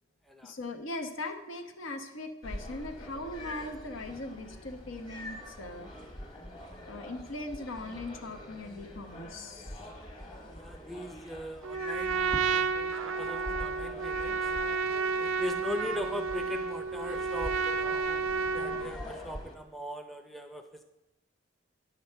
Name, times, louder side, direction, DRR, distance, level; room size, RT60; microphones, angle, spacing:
voice 1, 0.4-5.9 6.9-9.8, left 2 dB, 80° left, 5 dB, 1.0 m, -40 dB
sound 1, 2.4-19.6, left 1 dB, 25° left, 1.3 m, -44 dB
voice 2, 10.6-14.5 15.2-18.2 18.5-20.8, equal, ahead, 6 dB, 0.5 m, -40 dB
Trumpet, 11.6-19.0, right 4 dB, 85° right, 0.5 m, -31 dB
10.0 x 7.2 x 4.5 m, 0.98 s
head